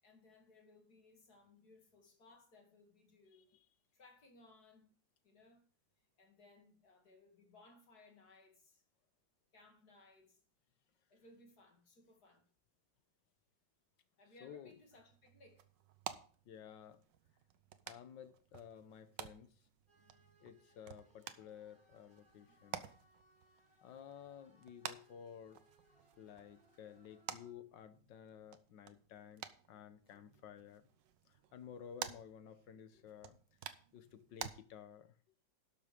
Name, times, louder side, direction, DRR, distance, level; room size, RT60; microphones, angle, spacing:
voice 1, 0.0-3.5 3.9-4.9 5.2-5.7 6.2-8.8 9.5-10.4 11.1-12.5 14.2-15.7 22.5-22.6, left 2 dB, 55° left, 2.8 m, -64 dB
voice 2, 14.4-14.7 16.4-17.0 17.9-19.5 20.4-22.9 23.8-25.6 26.2-30.9 31.3-33.4 33.9-35.1, left 8 dB, 80° left, 1.6 m, -54 dB
sound 1, 14.7-34.5, right 10 dB, 75° right, 1.4 m, -52 dB
sound 2, 19.9-27.5, equal, 15° left, 4.4 m, -71 dB
12.0 x 6.2 x 5.2 m
omnidirectional pair, 1.9 m